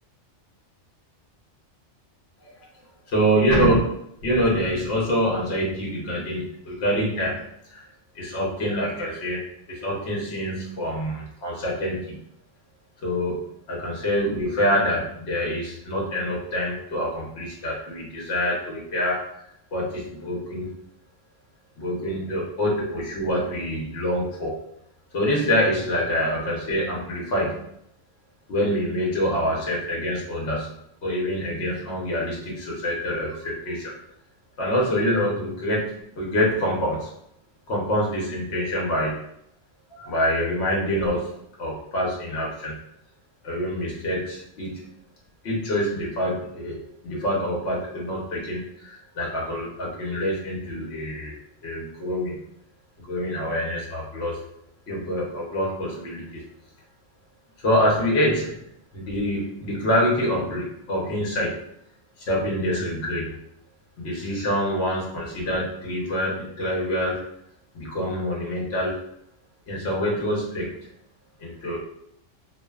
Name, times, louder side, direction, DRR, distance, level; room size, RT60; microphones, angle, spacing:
voice 1, 3.1-3.8 4.2-7.4 7.7-7.9 8.1-9.4 9.7-12.2 13.0-13.4 13.7-19.2 19.7-20.7 21.8-24.5 25.1-27.7 28.5-30.7 31.0-33.9 34.6-37.1 37.7-39.1 39.9-42.7 43.4-44.9 45.4-46.8 47.0-51.3 51.6-52.4 53.0-54.4 54.9-56.4 57.6-58.6 58.9-61.5 62.2-63.3 64.0-67.2 67.7-69.0 69.7-70.7 71.4-71.8, equal, 65° left, -3 dB, 0.9 m, -26 dB
2.6 x 2.1 x 2.2 m, 0.74 s
omnidirectional pair, 1.2 m